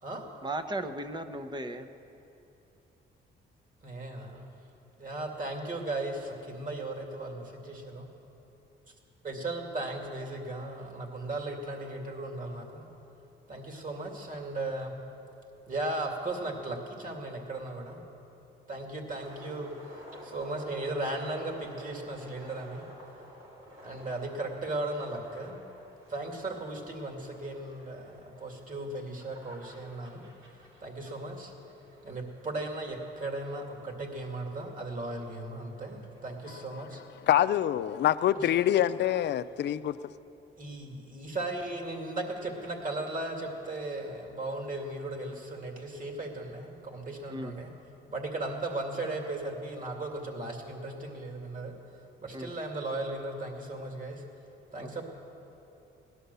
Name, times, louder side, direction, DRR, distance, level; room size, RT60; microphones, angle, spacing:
voice 1, 0.4-1.9 47.3-47.5 52.3-52.5 54.8-55.0, right 1 dB, 20° right, 8 dB, 0.9 m, -36 dB
voice 2, 3.8-4.5 5.0-8.1 9.2-12.9 13.5-14.9 15.7-18.0 18.7-22.8 23.8-25.6 26.1-30.2 30.8-31.5 32.0-37.0 38.3-38.5 40.6-47.7 48.1-51.7 52.2-54.2 54.7-55.0, right 2 dB, 40° right, 2 dB, 2.5 m, -36 dB
sound 1, 19.2-37.0, equal, 75° right, 3.1 m, -53 dB
voice 3, 37.3-40.0, left 11 dB, 60° left, 14 dB, 0.5 m, -25 dB
17.5 x 11.5 x 6.9 m, 3.0 s
cardioid pair, 90°, 20 cm